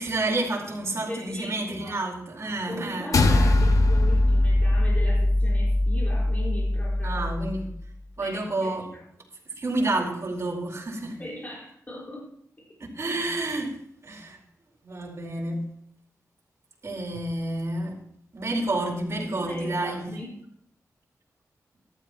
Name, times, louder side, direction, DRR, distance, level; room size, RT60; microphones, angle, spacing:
voice 1, 0.0-3.1 7.0-7.7 8.2-8.9 9.4-11.2 12.8-13.8 14.0-14.4 14.8-15.7 16.8-18.0 18.3-20.2, right 2 dB, 50° right, -2 dB, 4.6 m, -29 dB
voice 2, 1.1-2.0 2.7-7.3 8.2-8.7 11.2-12.3 19.4-20.3, left 1 dB, 25° left, -5 dB, 5.5 m, -38 dB
sound 1, 3.1-7.7, left 1 dB, 70° left, 1.3 m, -21 dB
14.5 x 13.0 x 3.1 m, 0.69 s
wide cardioid pair, 90°, 6 cm